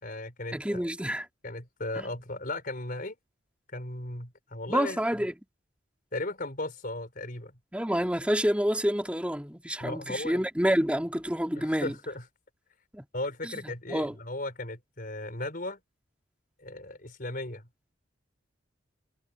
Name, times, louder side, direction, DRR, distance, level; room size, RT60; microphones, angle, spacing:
voice 1, 0.0-0.8 1.4-3.2 3.7-5.0 6.1-7.5 9.8-10.4 11.5-12.2 13.1-15.8 16.6-17.7, left 2 dB, 45° left, 4.6 m, -36 dB
voice 2, 0.5-1.3 2.0-2.1 4.7-5.3 7.7-12.0 12.9-13.0 13.4-14.2, equal, 5° right, 2.6 m, -28 dB
head